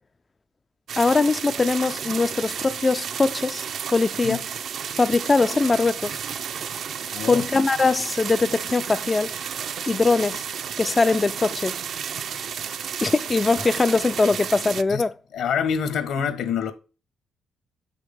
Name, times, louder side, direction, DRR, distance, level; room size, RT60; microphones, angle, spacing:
sound 1, 0.9-14.8, right 8 dB, 65° right, 0.6 m, -32 dB
voice 1, 1.0-3.7 3.9-4.4 5.0-6.2 7.3-9.3 9.9-10.4 10.8-11.8 13.0-15.2, left 3 dB, 25° left, 0.3 m, -21 dB
voice 2, 7.1-7.4 14.9-15.0 15.3-16.7, left 7 dB, 75° left, 1.5 m, -26 dB
8.4 x 6.4 x 3.6 m
cardioid pair, 90°, 0 cm